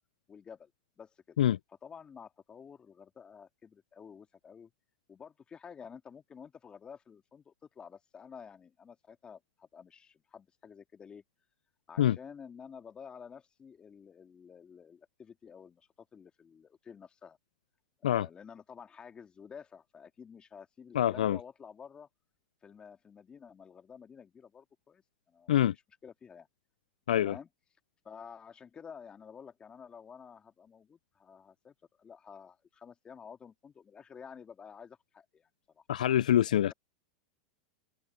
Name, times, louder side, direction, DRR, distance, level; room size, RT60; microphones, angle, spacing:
voice 1, 0.3-0.7 1.0-1.4 1.8-4.7 5.1-11.2 11.9-17.4 18.0-22.1 22.6-25.5 26.0-26.5 27.2-27.5 28.0-35.5 35.7-35.8, left 6 dB, 25° left, 2.8 m, -51 dB
voice 2, 20.9-21.4 25.5-25.7 27.1-27.4 35.9-36.7, left 11 dB, 85° left, 0.3 m, -25 dB
open air
hypercardioid pair, 110°, 4 cm